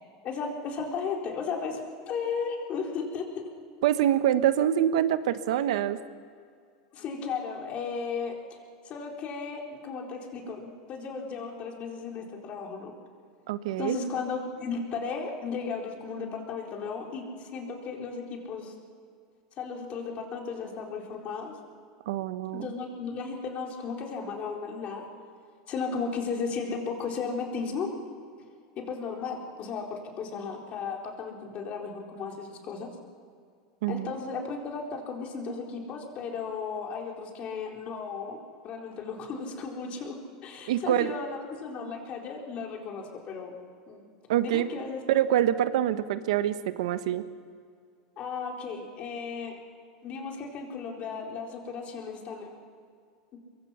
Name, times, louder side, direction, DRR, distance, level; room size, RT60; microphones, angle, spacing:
voice 1, 0.2-1.8 2.1-3.5 6.9-8.6 8.8-12.9 13.8-18.7 19.6-21.5 22.5-25.0 25.7-27.9 28.8-32.9 33.9-43.6 43.9-44.0 44.4-45.0 48.2-49.5 50.0-52.5 53.3-53.4, left 5 dB, 40° left, 1 dB, 4.2 m, -35 dB
voice 2, 3.8-6.0 13.5-14.0 22.1-22.7 33.8-34.1 40.7-41.2 44.3-44.7 45.1-47.3, right 11 dB, 80° right, 12 dB, 1.2 m, -25 dB
24.0 x 22.5 x 5.8 m, 2.2 s
supercardioid pair, 130°, 3 cm